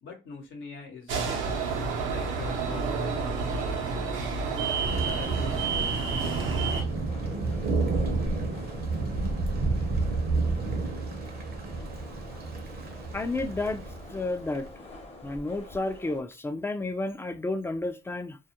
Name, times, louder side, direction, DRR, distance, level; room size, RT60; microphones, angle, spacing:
voice 1, 0.0-1.2 2.0-4.6 5.0-6.2, left 5 dB, 75° left, 0.8 m, -44 dB
sound 1, 1.1-6.8, right 5 dB, 85° right, 0.6 m, -30 dB
sound 2, 1.4-16.2, left 2 dB, 30° left, 0.8 m, -47 dB
Thunder, 4.8-14.6, right 3 dB, 50° right, 0.6 m, -30 dB
voice 2, 13.1-13.8 14.1-14.7 15.2-18.4, left 2 dB, 10° left, 0.3 m, -31 dB
2.3 x 2.0 x 2.8 m
cardioid pair, 90°, 20 cm